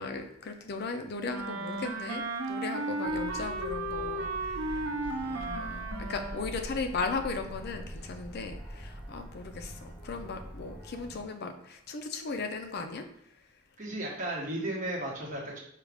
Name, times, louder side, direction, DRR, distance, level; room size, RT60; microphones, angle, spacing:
voice 1, 0.0-4.9 5.2-5.8 6.1-13.1, left 4 dB, 50° left, 6 dB, 0.5 m, -37 dB
Wind instrument woodwind instrument, 1.3-6.5, right 2 dB, 80° right, 0.6 m, -34 dB
sound 1, 3.0-11.2, equal, 10° left, 0.7 m, -43 dB
voice 2, 13.8-15.6, right 1 dB, 40° right, -3 dB, 1.1 m, -34 dB
4.8 x 2.4 x 3.5 m, 0.73 s
head